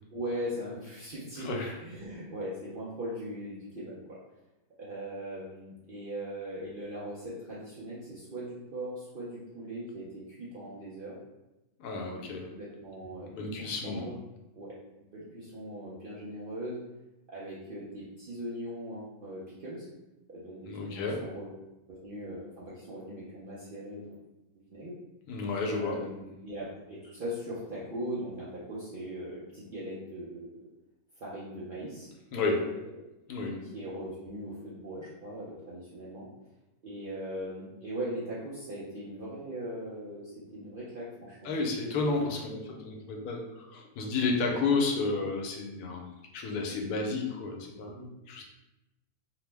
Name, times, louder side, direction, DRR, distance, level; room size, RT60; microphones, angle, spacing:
voice 1, 0.1-4.2 4.8-11.2 12.1-14.2 14.6-16.8 17.3-19.9 20.3-21.6 21.9-24.3 24.7-24.9 25.7-30.6 31.2-32.8 33.6-36.3 36.8-41.5 41.8-42.3 47.8-48.1, right 1 dB, 60° right, -8 dB, 0.5 m, -40 dB
voice 2, 11.8-12.5 13.2-14.0 20.7-21.2 25.3-26.0 32.3-32.7 33.3-33.6 41.4-47.9 48.3-48.4, left 3 dB, 85° left, 1 dB, 1.1 m, -31 dB
2.9 x 2.0 x 3.2 m, 0.98 s
omnidirectional pair, 1.6 m